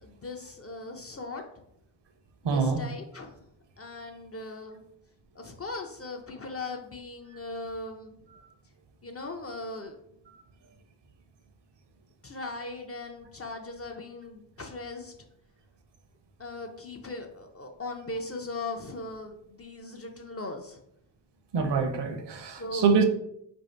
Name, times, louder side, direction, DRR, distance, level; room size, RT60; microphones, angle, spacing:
voice 1, 0.0-1.4 2.5-3.4 3.8-4.8 5.4-8.2 9.0-10.0 12.2-15.1 16.4-20.8 22.6-22.9, left 2 dB, 35° left, 0.4 m, -39 dB
voice 2, 2.4-2.8 21.5-23.0, right 5 dB, 60° right, 0.6 m, -25 dB
2.8 x 2.6 x 4.3 m
wide cardioid pair, 120°, 47 cm